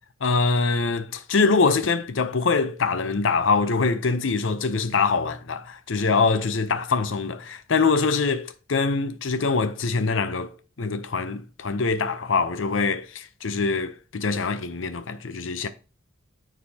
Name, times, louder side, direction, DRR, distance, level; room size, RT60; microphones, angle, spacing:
voice 1, 0.2-15.7, left 4 dB, 75° left, 0.7 m, -24 dB
9.5 x 4.1 x 2.8 m
head